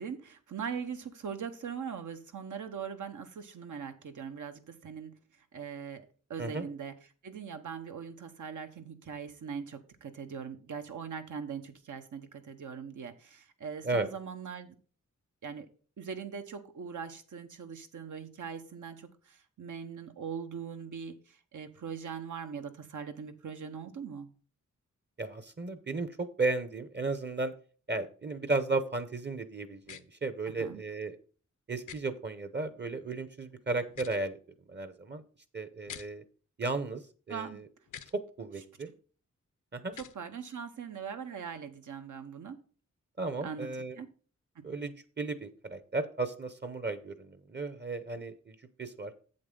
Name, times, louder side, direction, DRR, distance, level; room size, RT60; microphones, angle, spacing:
voice 1, 0.0-5.1 5.5-6.9 7.2-14.7 15.4-15.7 16.0-24.3 30.6-30.8 37.3-37.6 40.0-42.6 43.4-43.7 43.9-44.1 44.5-44.6, right 6 dB, 80° right, 7 dB, 1.1 m, -41 dB
voice 2, 25.2-27.5 27.9-31.2 31.7-34.4 34.7-35.2 35.5-36.2 36.6-37.6 38.1-38.9 39.7-39.9 43.2-44.0 44.6-49.2, right 3 dB, 35° right, 11 dB, 0.8 m, -34 dB
sound 1, 29.8-30.0 31.9-32.0 33.9-34.2 35.9-36.1 37.9-38.1 39.9-40.2, left 8 dB, 75° left, 0.7 m, -45 dB
7.9 x 7.8 x 3.8 m, 0.40 s
wide cardioid pair, 90°, 30 cm